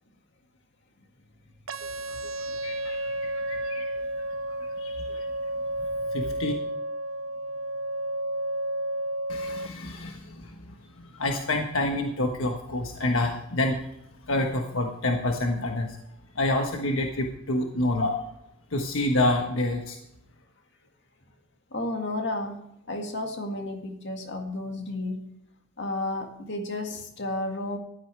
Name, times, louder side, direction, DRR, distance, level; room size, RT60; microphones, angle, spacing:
sound 1, 1.7-9.7, right 1 dB, 70° right, 0.5 m, -31 dB
voice 1, 2.6-4.0 4.8-5.3 6.1-6.5 9.3-13.8 14.3-16.0 16.3-18.2 18.7-20.0, left 1 dB, 75° left, 2 dB, 1.3 m, -28 dB
voice 2, 21.7-22.6 22.9-25.2 25.8-27.8, left 2 dB, 60° left, 4 dB, 2.0 m, -32 dB
14.0 x 12.5 x 3.4 m, 0.80 s
head